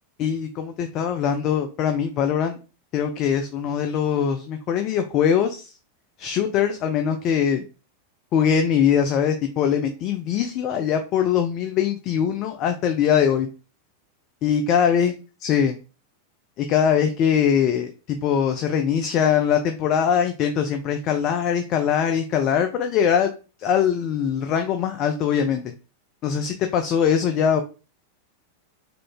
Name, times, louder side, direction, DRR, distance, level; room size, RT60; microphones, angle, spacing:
voice 1, 0.2-2.6 2.9-5.7 6.2-7.6 8.3-13.5 14.4-15.1 15.4-15.7 16.6-23.3 23.6-25.7 26.2-27.6, left 8 dB, 35° left, 6 dB, 0.5 m, -22 dB
3.9 x 3.2 x 3.7 m, 0.33 s
figure-of-eight pair, 90°, 0 cm